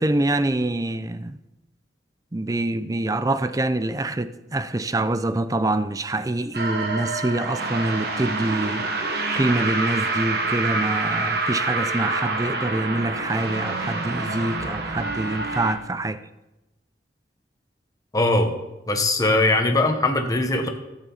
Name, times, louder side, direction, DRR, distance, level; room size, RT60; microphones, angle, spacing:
voice 1, 0.0-1.4 2.3-8.9 9.3-16.2, right 2 dB, 20° right, 0.5 m, -25 dB
sound 1, 6.5-15.8, right 3 dB, 60° right, 1.4 m, -27 dB
voice 2, 18.1-18.5 18.9-20.7, left 2 dB, 20° left, 1.1 m, -20 dB
18.0 x 7.1 x 4.0 m
head